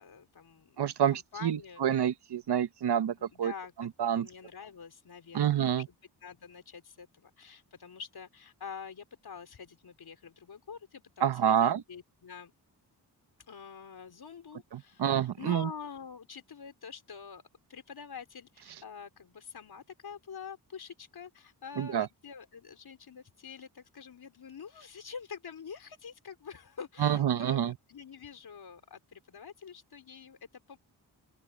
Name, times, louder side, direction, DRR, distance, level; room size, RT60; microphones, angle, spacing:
voice 1, 0.0-0.8 1.1-1.8 3.1-3.7 4.0-5.9 6.2-12.5 13.5-17.4 17.7-30.8, left 6 dB, 65° left, 4.4 m, -46 dB
voice 2, 0.8-3.5 3.8-4.3 5.3-5.9 11.2-11.8 14.7-15.7 21.8-22.1 27.0-27.7, right 9 dB, 70° right, 1.1 m, -28 dB
open air
cardioid pair, 85°, 41 cm